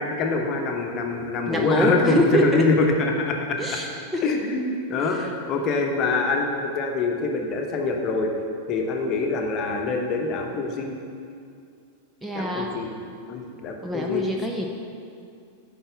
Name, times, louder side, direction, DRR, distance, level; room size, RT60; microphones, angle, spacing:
voice 1, 0.0-3.6 4.2-8.3 8.7-11.0 12.3-12.9 13.3-14.2, left 3 dB, 35° left, 2 dB, 1.1 m, -25 dB
voice 2, 1.5-2.6 3.6-4.2 5.2-5.3 12.2-12.8 13.8-14.7, equal, 5° right, 1 dB, 0.7 m, -25 dB
10.0 x 4.4 x 7.0 m, 2.4 s
figure-of-eight pair, 90°, 0 cm